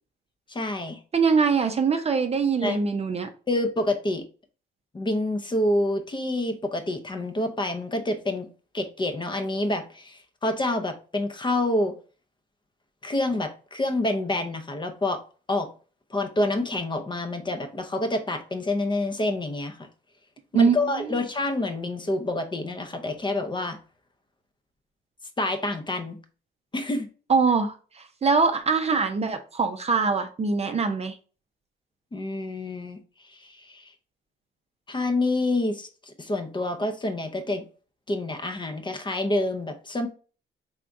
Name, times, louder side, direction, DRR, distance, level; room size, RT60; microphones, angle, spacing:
voice 1, 0.5-1.0 2.6-2.8 3.5-4.2 4.9-8.5 8.7-11.9 13.0-15.2 15.5-15.7 16.1-19.8 20.5-23.8 25.4-26.2 26.7-27.1 32.1-33.0 33.3-33.9 34.9-37.6 38.1-40.1, left 2 dB, 25° left, 0.7 m, -27 dB
voice 2, 1.1-3.3 20.5-20.8 27.3-27.7 28.2-31.2, right 5 dB, 30° right, 0.5 m, -23 dB
3.5 x 3.3 x 2.6 m
cardioid pair, 90°, 20 cm